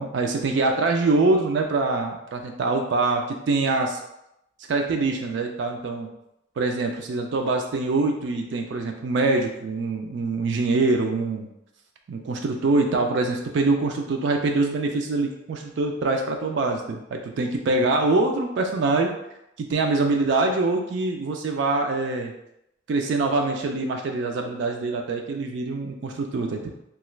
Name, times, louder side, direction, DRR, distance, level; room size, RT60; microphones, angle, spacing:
voice 1, 0.0-4.0 4.7-6.1 6.6-11.5 12.1-19.1 19.6-22.3 22.9-26.7, right 3 dB, 60° right, 3 dB, 0.3 m, -24 dB
2.9 x 2.3 x 3.1 m, 0.83 s
head